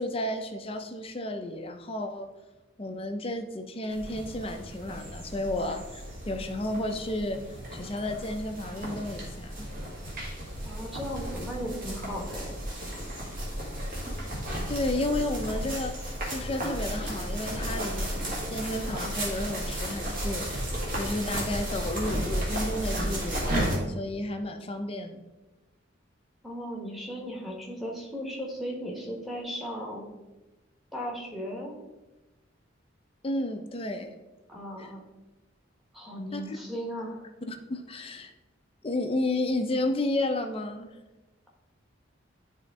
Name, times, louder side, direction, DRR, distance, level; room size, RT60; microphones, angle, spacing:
voice 1, 0.0-2.3 2.8-7.4 7.7-9.7 14.7-18.1 18.5-20.5 20.9-23.6 23.9-25.2 33.2-34.2 34.8-34.9 36.3-36.6 37.5-38.3 38.8-40.9, left 1 dB, 30° left, 6 dB, 0.5 m, -32 dB
sound 1, 3.9-23.8, equal, 45° right, 1.9 m, -34 dB
voice 2, 10.6-12.5 26.4-30.1 30.9-31.7 34.5-35.0 35.9-37.2, equal, ahead, -3 dB, 1.3 m, -36 dB
11.0 x 3.7 x 3.6 m, 1.1 s
head